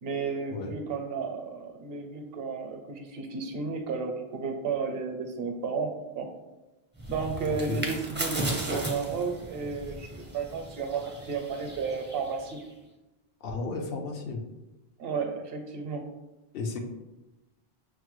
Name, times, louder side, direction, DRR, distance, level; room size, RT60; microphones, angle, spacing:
voice 1, 0.0-6.3 7.1-12.6 15.0-16.1, right 5 dB, 70° right, 4 dB, 0.8 m, -33 dB
sound 1, 7.0-12.7, right 1 dB, 15° right, 0.4 m, -36 dB
voice 2, 7.5-7.8 13.4-14.4 16.5-16.8, left 3 dB, 70° left, 3 dB, 0.8 m, -33 dB
6.2 x 2.1 x 3.0 m, 1.0 s
omnidirectional pair, 1.1 m